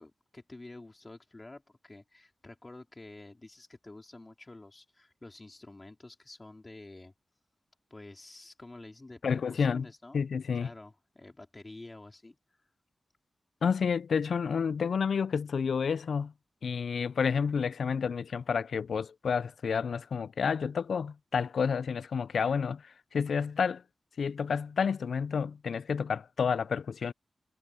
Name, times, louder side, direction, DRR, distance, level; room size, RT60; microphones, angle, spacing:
voice 1, 0.0-7.1 7.9-10.3 10.5-12.4, left 2 dB, 25° left, 4.1 m, -49 dB
voice 2, 9.2-9.9 10.1-10.7 13.6-16.3 16.6-23.8 24.2-27.1, left 6 dB, 85° left, 0.3 m, -30 dB
wide cardioid pair, 85°, 0 cm